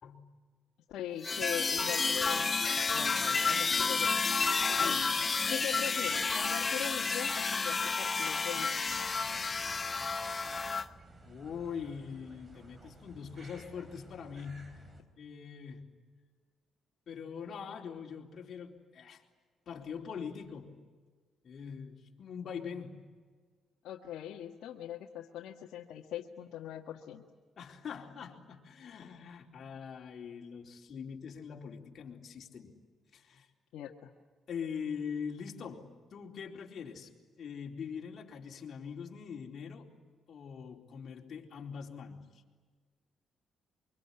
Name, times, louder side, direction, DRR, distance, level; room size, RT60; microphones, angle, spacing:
voice 1, 0.9-2.6 2.9-4.1 4.7-5.0 5.5-8.7 23.8-27.2 33.7-34.1, left 11 dB, 80° left, 0 dB, 1.7 m, -41 dB
sound 1, 1.2-10.8, left 4 dB, 30° left, 1.0 m, -31 dB
voice 2, 4.8-5.1 11.2-14.8 15.2-15.9 17.1-19.2 19.7-20.8 21.4-23.1 27.6-32.7 33.1-33.5 34.5-37.1 37.4-39.9 40.3-42.2, left 6 dB, 55° left, 1 dB, 4.1 m, -43 dB
sound 2, 8.8-15.0, right 2 dB, 35° right, 4.2 m, -54 dB
24.5 x 24.5 x 9.9 m, 1.5 s
cardioid pair, 90°, 0 cm